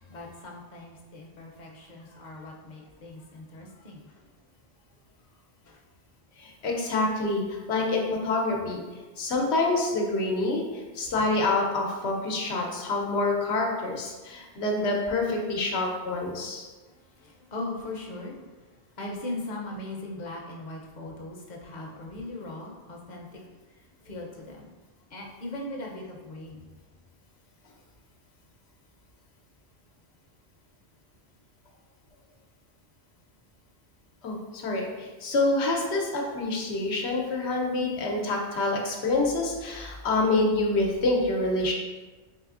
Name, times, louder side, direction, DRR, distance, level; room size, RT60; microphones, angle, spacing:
voice 1, 0.0-4.2 5.6-5.8 16.9-24.7 25.1-26.7, left 2 dB, 50° left, -1 dB, 0.7 m, -39 dB
voice 2, 6.4-8.8 9.2-16.6 34.2-41.7, left 2 dB, 85° left, 0 dB, 1.0 m, -27 dB
4.7 x 3.2 x 2.4 m, 1.3 s
omnidirectional pair, 1.1 m